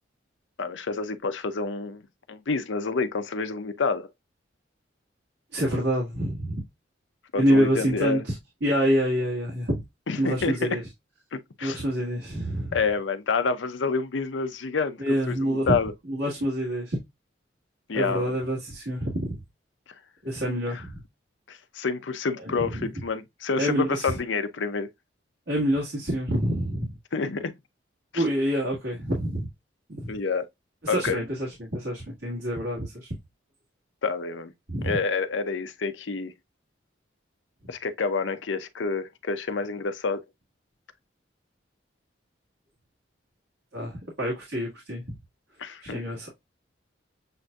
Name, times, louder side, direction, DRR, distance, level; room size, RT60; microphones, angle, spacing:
voice 1, 0.6-2.0 2.3-4.1 7.3-8.2 10.1-10.8 11.3-11.8 12.7-15.9 17.9-18.3 20.7-20.8 21.5-24.9 27.1-27.5 28.1-28.2 30.1-30.5 30.9-31.2 34.0-34.5 34.8-36.3 37.7-40.2 45.6-46.0, left 4 dB, 80° left, 0.6 m, -28 dB
voice 2, 5.5-6.6 7.4-8.3 8.6-9.8 10.2-10.8 11.6-12.8 15.0-15.8 16.1-17.0 17.9-19.4 20.2-21.0 22.4-22.9 23.6-24.1 25.5-26.9 28.1-29.5 29.9-30.1 30.8-33.1 34.7-35.0 43.7-45.2 45.8-46.3, equal, 85° right, 1.8 m, -27 dB
7.7 x 2.6 x 2.2 m
head